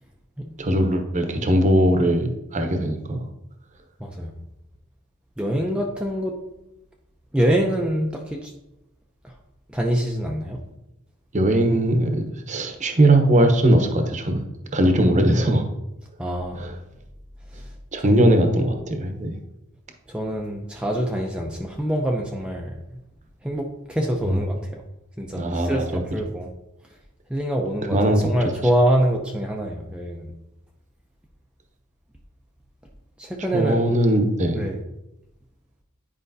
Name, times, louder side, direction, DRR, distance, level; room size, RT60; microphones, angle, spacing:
voice 1, 0.6-3.2 11.3-14.4 14.7-15.6 16.5-16.7 17.9-19.4 24.3-24.4 25.3-26.0 27.9-28.3 33.5-34.7, right 1 dB, 35° right, 5 dB, 0.9 m, -20 dB
voice 2, 4.0-4.3 5.4-6.3 7.3-8.5 9.2-9.3 9.7-10.6 14.9-15.4 16.2-16.7 17.5-17.6 18.0-18.4 20.1-22.8 23.4-24.8 25.2-26.5 27.3-30.3 33.2-33.9 34.5-34.8, equal, 5° right, 0 dB, 0.5 m, -25 dB
10.0 x 5.0 x 2.7 m, 0.91 s
head